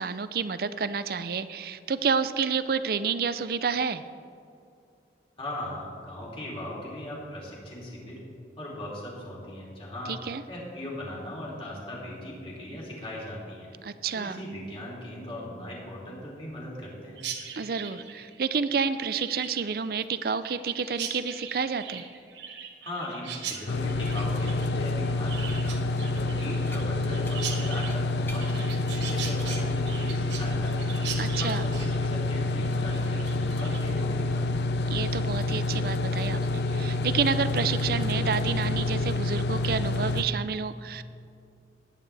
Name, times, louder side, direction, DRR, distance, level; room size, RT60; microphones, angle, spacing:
voice 1, 0.0-4.0 10.1-10.4 13.8-14.4 17.5-22.0 31.2-31.7 34.9-41.0, right 5 dB, 55° right, 13 dB, 0.5 m, -29 dB
voice 2, 5.4-8.2 8.6-10.1 10.5-13.7 14.1-17.2 22.8-25.8 26.1-31.0 31.4-34.7, left 1 dB, 30° left, -4 dB, 3.0 m, -39 dB
Chirp tweet, 17.2-34.0, right 7 dB, 85° right, 1.3 m, -40 dB
sound 1, 23.7-40.2, left 2 dB, 70° left, 0.6 m, -28 dB
sound 2, 26.6-26.9 27.3-28.5 28.9-29.8 31.2-31.7, left 1 dB, 10° left, 0.8 m, -47 dB
19.0 x 9.1 x 3.4 m, 2.5 s
head